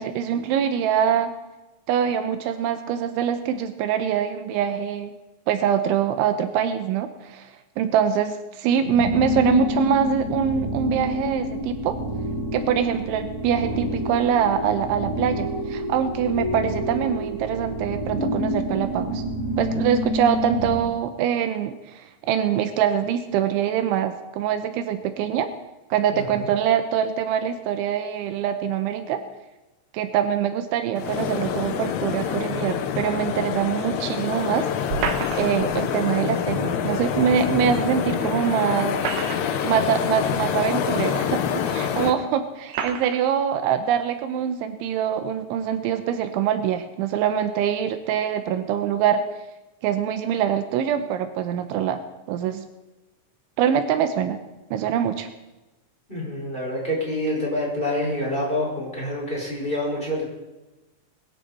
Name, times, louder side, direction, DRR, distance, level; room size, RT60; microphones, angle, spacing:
voice 1, 0.0-1.3 1.9-5.1 5.5-7.5 7.8-12.0 12.5-19.2 19.6-25.5 25.9-29.2 29.9-34.7 35.4-39.0 39.6-49.2 49.8-52.0 52.3-52.7 53.6-54.4 54.7-55.3, right 8 dB, 80° right, 9 dB, 3.2 m, -24 dB
sound 1, 8.8-20.8, left 1 dB, 45° right, 5.2 m, -28 dB
sound 2, 31.0-42.1, left 8 dB, 80° left, 3.6 m, -26 dB
sound 3, 34.9-35.7 37.4-37.5 38.8-39.7 40.6-40.7 41.6-41.7 42.7-43.2, right 7 dB, 65° right, 2.7 m, -29 dB
voice 2, 56.1-60.2, left 1 dB, 10° left, -4 dB, 5.0 m, -27 dB
21.5 x 13.0 x 4.3 m, 1.1 s
omnidirectional pair, 5.5 m